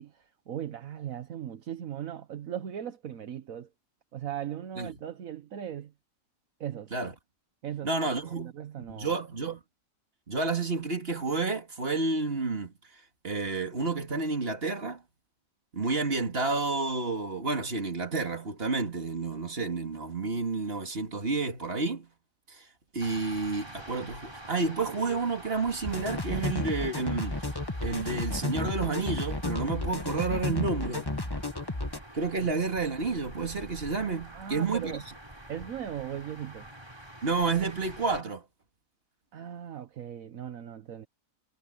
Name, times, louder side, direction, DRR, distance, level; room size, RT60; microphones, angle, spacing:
voice 1, 0.0-3.7 4.1-5.9 6.6-6.9 7.6-9.3 34.2-35.0 35.5-36.7 39.3-41.1, right 10 dB, 75° right, 1.4 m, -38 dB
voice 2, 7.8-8.5 8.9-9.6 10.3-12.7 13.2-15.0 15.7-22.1 22.5-22.6 22.9-27.4 27.8-31.1 32.1-35.0 37.2-38.4, right 3 dB, 45° right, 2.7 m, -30 dB
sound 1, 23.0-38.2, right 1 dB, 15° right, 4.1 m, -47 dB
sound 2, 25.8-32.0, left 2 dB, 15° left, 1.5 m, -32 dB
omnidirectional pair, 1.5 m